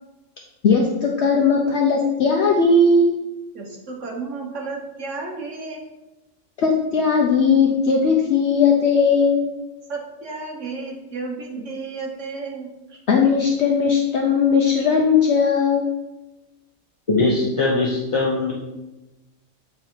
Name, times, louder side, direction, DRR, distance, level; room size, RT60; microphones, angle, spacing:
voice 1, 0.6-3.2 6.6-9.5 13.1-15.9, left 4 dB, 55° left, -1 dB, 0.9 m, -18 dB
voice 2, 3.5-5.8 9.9-13.0, right 3 dB, 60° right, -1 dB, 1.6 m, -32 dB
voice 3, 17.1-18.5, left 3 dB, 30° left, -5 dB, 0.8 m, -20 dB
8.1 x 3.6 x 4.6 m, 1.0 s
omnidirectional pair, 1.4 m